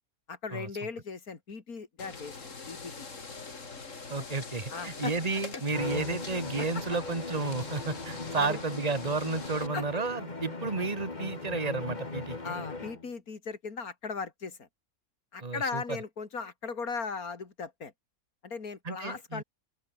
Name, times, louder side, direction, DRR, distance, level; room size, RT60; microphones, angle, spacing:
voice 1, 0.3-3.2 4.7-5.1 6.6-6.8 8.4-8.6 9.7-9.8 12.4-14.7 15.3-17.9 18.4-19.4, left 5 dB, 80° left, 3.1 m, -38 dB
sound 1, 2.0-9.7, left 4 dB, 55° left, 2.9 m, -43 dB
voice 2, 4.1-12.4 15.4-16.0 18.9-19.4, right 4 dB, 25° right, 2.1 m, -32 dB
Bowed string instrument, 5.7-13.1, left 3 dB, 30° left, 2.3 m, -39 dB
open air
omnidirectional pair, 1.5 m